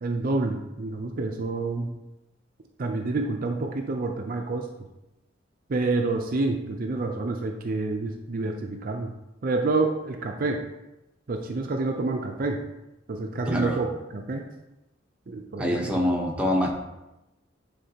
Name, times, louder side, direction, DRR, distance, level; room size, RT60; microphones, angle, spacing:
voice 1, 0.0-1.9 2.8-4.7 5.7-9.1 9.4-10.6 11.3-12.6 13.1-13.9 14.1-14.4 15.3-15.9, right 3 dB, 45° right, 3 dB, 0.5 m, -28 dB
voice 2, 13.5-13.8 15.6-16.7, left 1 dB, 5° right, -1 dB, 0.9 m, -25 dB
9.8 x 3.8 x 2.8 m, 0.96 s
head